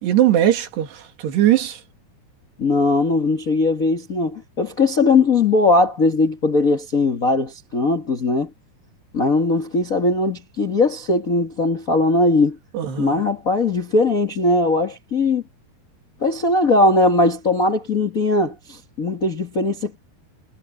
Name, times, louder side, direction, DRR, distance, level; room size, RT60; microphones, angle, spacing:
voice 1, 0.0-1.8 12.7-13.2, right 12 dB, 80° right, 4.4 m, -19 dB
voice 2, 2.6-8.5 9.1-12.6 13.0-15.4 16.2-20.0, left 2 dB, 85° left, 0.7 m, -19 dB
omnidirectional pair, 4.7 m